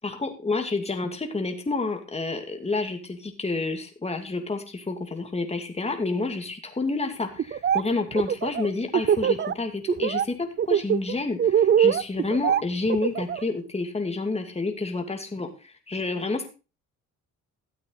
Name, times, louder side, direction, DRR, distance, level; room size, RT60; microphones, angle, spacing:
voice 1, 0.0-16.5, left 3 dB, 20° left, 5 dB, 2.5 m, -29 dB
Laughter, 7.4-7.8 8.1-9.5 9.9-10.3 10.6-13.4, right 9 dB, 35° right, 0.5 m, -22 dB
13.0 x 8.2 x 4.1 m, 0.31 s
cardioid pair, 90°, 30 cm